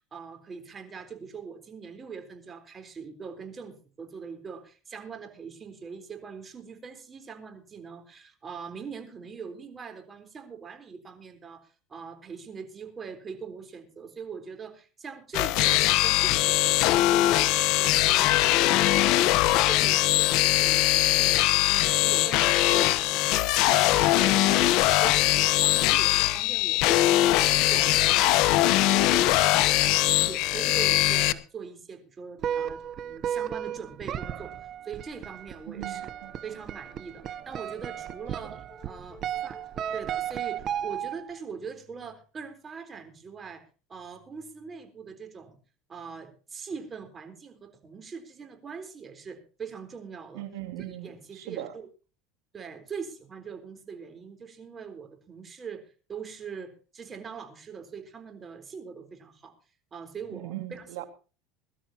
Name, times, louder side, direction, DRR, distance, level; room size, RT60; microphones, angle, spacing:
voice 1, 0.1-34.5 34.8-36.1 36.4-38.6 38.8-39.6 39.9-43.6 43.9-45.6 45.9-50.4 50.9-51.9 52.5-59.5 59.9-61.1, right 6 dB, 25° right, 7 dB, 3.9 m, -42 dB
sound 1, 15.3-31.3, left 16 dB, 60° left, 0.9 m, -22 dB
sound 2, 32.4-41.4, right 9 dB, 40° right, 0.8 m, -34 dB
Brass instrument, 34.8-40.2, left 1 dB, 15° left, 7.6 m, -54 dB
voice 2, 35.7-36.4 38.4-38.5 50.3-51.7 60.3-61.1, right 14 dB, 80° right, 8 dB, 2.5 m, -39 dB
22.5 x 12.5 x 2.9 m, 0.35 s
supercardioid pair, 115°, 0 cm